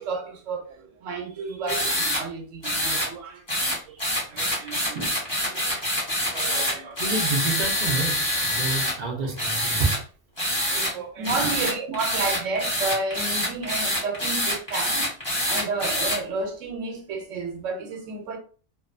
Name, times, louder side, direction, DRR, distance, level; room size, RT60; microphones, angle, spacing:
voice 1, 0.0-5.0 5.5-5.8 6.2-7.1 10.7-15.1 15.5-18.4, right 4 dB, 85° right, 1.0 m, -32 dB
sound 1, 1.7-2.2 2.6-3.1 3.5-8.9 9.4-10.0 10.4-10.9 11.2-16.2, equal, 25° left, 1.0 m, -26 dB
voice 2, 7.0-9.9 11.4-11.5, right 3 dB, 45° right, 0.6 m, -29 dB
2.5 x 2.2 x 2.5 m
omnidirectional pair, 1.3 m